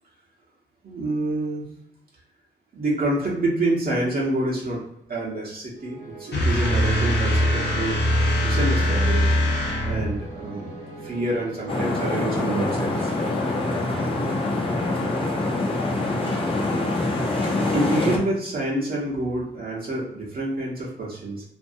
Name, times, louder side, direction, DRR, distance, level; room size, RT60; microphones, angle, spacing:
voice 1, 0.8-1.6 2.7-4.8 5.1-8.0 8.4-9.2 9.8-13.1 17.6-21.4, right 1 dB, 55° right, -4 dB, 1.0 m, -27 dB
sound 1, 5.7-14.2, right 2 dB, 80° right, 0.9 m, -40 dB
sound 2, 6.3-10.2, equal, 65° left, 0.8 m, -22 dB
sound 3, 11.7-18.2, left 2 dB, 30° left, 0.8 m, -25 dB
2.6 x 2.5 x 2.6 m, 0.80 s
supercardioid pair, 50°, 19 cm